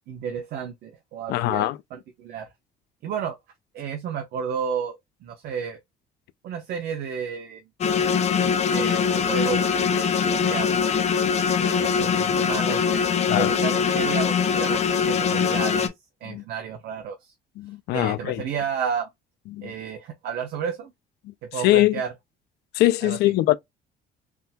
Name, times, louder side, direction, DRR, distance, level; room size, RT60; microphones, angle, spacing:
voice 1, 0.1-2.5 3.0-3.4 3.7-5.8 6.4-7.7 8.2-10.7 11.6-15.9 16.2-17.3 17.9-19.1 19.6-20.9 21.4-22.1 23.0-23.3, right 7 dB, 70° right, 0.9 m, -32 dB
voice 2, 1.3-1.8 13.3-13.5 16.2-16.4 17.6-18.4 19.5-19.7 21.3-21.4 21.6-22.0 22.7-23.5, left 16 dB, 75° left, 0.4 m, -22 dB
sound 1, 7.8-15.9, left 6 dB, 40° left, 0.7 m, -22 dB
3.6 x 2.7 x 2.2 m
cardioid pair, 110°, 17 cm